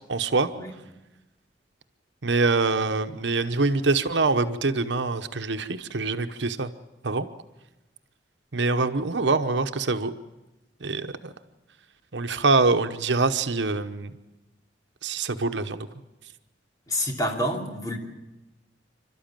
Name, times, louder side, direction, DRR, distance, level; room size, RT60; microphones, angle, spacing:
voice 1, 0.1-0.5 2.2-6.7 7.0-7.3 8.5-10.1 10.8-11.3 12.1-14.1 15.0-15.9, right 3 dB, 80° right, 9 dB, 1.0 m, -24 dB
voice 2, 16.9-18.0, equal, 20° left, 1 dB, 3.1 m, -28 dB
28.0 x 12.5 x 9.0 m, 1.0 s
head